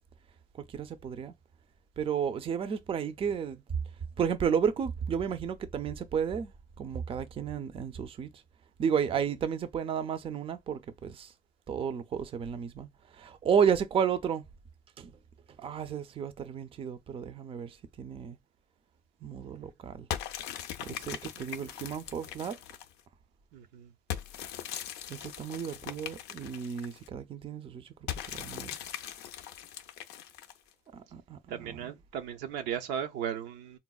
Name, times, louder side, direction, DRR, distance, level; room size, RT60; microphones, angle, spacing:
voice 1, 0.6-1.3 2.0-3.6 4.2-6.5 6.8-8.4 8.8-11.3 11.7-14.5 15.0-15.2 15.6-18.4 19.2-20.1 20.8-22.6 25.1-28.8 30.9-31.9, right 7 dB, 35° right, 0.4 m, -32 dB
sound 1, 20.1-23.0 24.1-27.1 28.1-30.7, left 10 dB, 85° left, 0.4 m, -40 dB
voice 2, 23.5-23.9 31.5-33.8, right 9 dB, 85° right, 0.5 m, -36 dB
3.9 x 2.0 x 2.3 m
cardioid pair, 110°, 17 cm